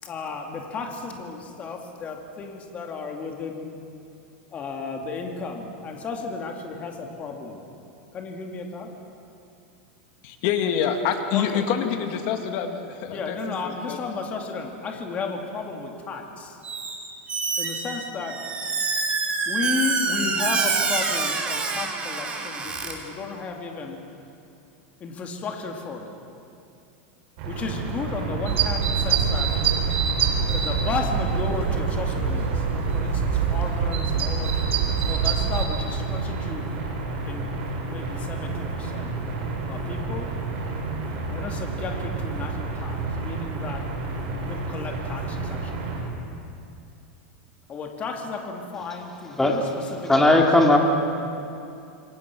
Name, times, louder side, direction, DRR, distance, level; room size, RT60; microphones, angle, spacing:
voice 1, 0.0-3.8 4.5-7.7 8.1-8.9 11.3-11.6 13.1-16.6 17.6-18.4 19.5-24.0 25.0-26.1 27.5-29.5 30.5-34.6 35.0-36.7 37.0-37.4 37.8-39.1 39.7-40.3 41.2-43.8 44.3-45.9 47.7-49.6 49.9-50.3, left 4 dB, 20° left, 2 dB, 2.5 m, -33 dB
voice 2, 10.2-14.0, left 8 dB, 45° left, 6 dB, 2.0 m, -26 dB
Squeak, 16.6-17.0 17.3-22.9, right 4 dB, 15° right, 2.7 m, -26 dB
sound 1, 27.4-46.0, right 3 dB, 50° right, 7.0 m, -31 dB
sound 2, 28.5-35.7, right 7 dB, 75° right, 3.5 m, -25 dB
voice 3, 50.0-50.8, left 2 dB, 5° left, 1 dB, 2.3 m, -17 dB
27.5 x 24.0 x 6.2 m, 2.6 s
supercardioid pair, 165°, 7 cm